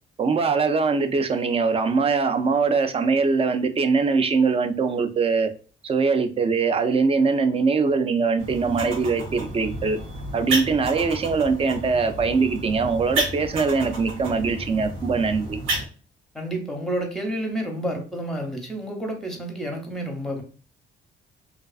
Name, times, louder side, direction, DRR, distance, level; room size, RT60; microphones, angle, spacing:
voice 1, 0.2-5.5 5.8-10.0 10.3-15.6, right 4 dB, 30° right, 0.3 m, -22 dB
sound 1, 8.4-15.9, right 2 dB, 85° right, 0.8 m, -31 dB
voice 2, 16.3-20.4, right 1 dB, ahead, 0.7 m, -30 dB
2.4 x 2.3 x 2.3 m
cardioid pair, 90°, 20 cm